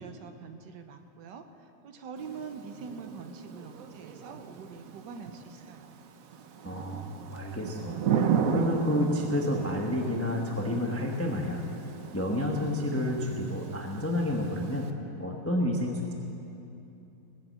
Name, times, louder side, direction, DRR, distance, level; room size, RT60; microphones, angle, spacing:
voice 1, 0.0-6.0, right 5 dB, 65° right, 7 dB, 1.2 m, -44 dB
Thunder / Rain, 2.2-14.9, right 6 dB, 85° right, 0.7 m, -35 dB
voice 2, 6.6-8.0 8.2-11.6 12.1-14.9 15.2-16.1, left 1 dB, 15° left, 0 dB, 0.5 m, -30 dB
19.0 x 7.7 x 7.7 m, 2.8 s
omnidirectional pair, 2.4 m